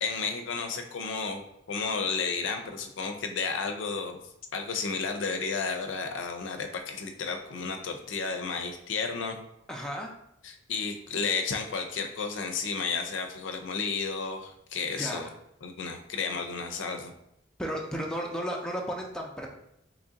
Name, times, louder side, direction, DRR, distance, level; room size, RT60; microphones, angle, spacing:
voice 1, 0.0-4.2 4.5-9.4 10.4-15.3 15.6-17.1, left 5 dB, 85° left, 5 dB, 0.5 m, -32 dB
voice 2, 9.7-10.1 15.0-15.3 17.6-19.5, equal, 5° left, -1 dB, 0.4 m, -34 dB
3.1 x 2.5 x 3.8 m, 0.79 s
head